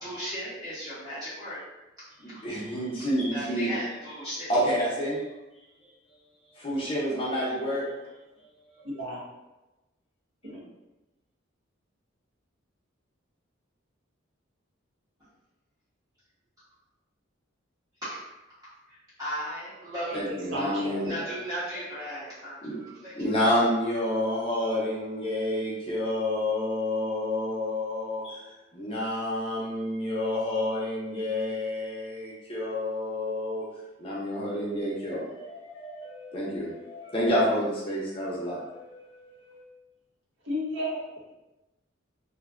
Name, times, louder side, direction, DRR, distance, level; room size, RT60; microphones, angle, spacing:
voice 1, 0.0-1.6 3.3-4.5 18.0-18.1 18.9-20.1 21.0-22.6 22.9-23.3, equal, 20° right, -13 dB, 0.7 m, -36 dB
voice 2, 2.2-3.7 4.5-5.3 6.5-7.9 8.7-8.8 20.1-21.2 22.6-33.7 34.0-39.7, left 1 dB, 25° left, -5 dB, 0.5 m, -29 dB
voice 3, 8.8-9.2 10.4-10.6 20.1-21.0 40.4-41.3, equal, 65° right, -4 dB, 0.6 m, -33 dB
2.5 x 2.1 x 2.3 m, 1.0 s
head